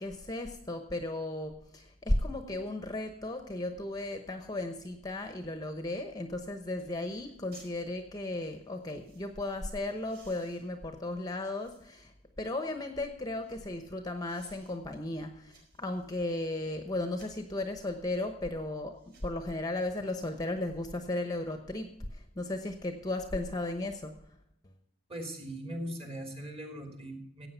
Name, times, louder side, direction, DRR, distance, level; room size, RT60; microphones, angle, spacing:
voice 1, 0.0-24.1, left 2 dB, 15° left, 6 dB, 1.0 m, -35 dB
sound 1, 6.8-6.9 7.2-7.8 8.5-9.3 9.8-12.1 12.6-13.7 14.2-14.8 15.1-16.5 17.1-17.5 18.1-18.3 18.9-19.4 20.0-20.2 20.6-21.4 21.8-21.9, right 4 dB, 50° right, 4.9 m, -63 dB
voice 2, 25.1-27.5, right 1 dB, 25° right, 3 dB, 2.9 m, -40 dB
15.5 x 8.7 x 5.6 m, 0.78 s
head